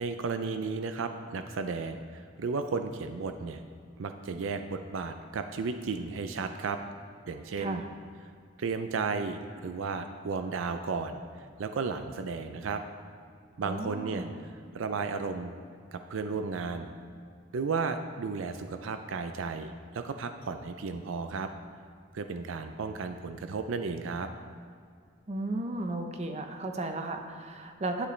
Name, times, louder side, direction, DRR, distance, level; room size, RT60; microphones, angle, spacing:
voice 1, 0.0-3.6 4.0-6.8 7.3-7.8 8.6-12.8 13.6-14.3 14.7-15.5 15.9-16.9 17.5-21.5 22.1-24.3, right 4 dB, 75° right, 8 dB, 0.4 m, -34 dB
voice 2, 13.6-14.4 25.3-28.1, right 2 dB, 35° right, 5 dB, 0.7 m, -35 dB
11.0 x 8.2 x 3.2 m, 2.3 s
head